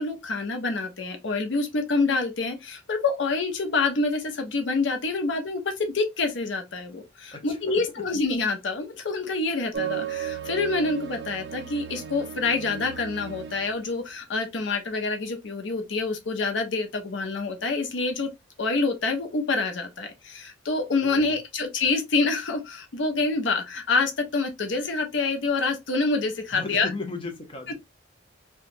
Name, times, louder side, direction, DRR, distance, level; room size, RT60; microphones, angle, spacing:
voice 1, 0.0-18.3 18.6-26.9, left 3 dB, 70° left, 0.6 m, -27 dB
voice 2, 7.3-8.0 21.0-21.4 26.5-27.7, left 3 dB, 25° left, 0.6 m, -36 dB
sound 1, 9.7-13.8, right 9 dB, 60° right, 0.4 m, -35 dB
2.9 x 2.2 x 2.5 m
head